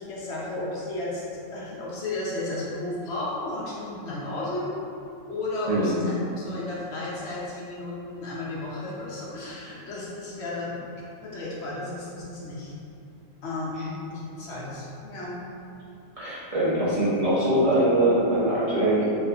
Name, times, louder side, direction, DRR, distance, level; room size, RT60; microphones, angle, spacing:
voice 1, 0.0-4.8 5.3-10.7 11.2-12.7 13.4-15.5, left 2 dB, 60° left, -7 dB, 1.0 m, -33 dB
voice 2, 16.2-19.0, right 1 dB, 40° right, -11 dB, 0.5 m, -22 dB
2.8 x 2.5 x 3.4 m, 2.7 s
omnidirectional pair, 1.4 m